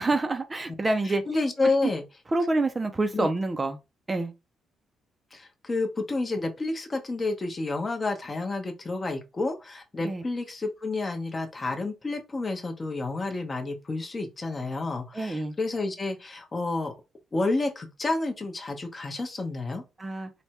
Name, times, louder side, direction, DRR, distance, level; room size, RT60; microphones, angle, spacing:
voice 1, 0.0-1.2 1.8-1.9 2.3-3.8 4.1-4.3 10.0-10.2 15.1-15.5 20.0-20.3, right 2 dB, 25° right, 0.4 m, -27 dB
voice 2, 1.0-2.0 3.1-3.3 5.3-16.9 17.3-19.8, left 3 dB, 30° left, 0.7 m, -30 dB
3.3 x 2.1 x 2.8 m
cardioid pair, 90°, 0 cm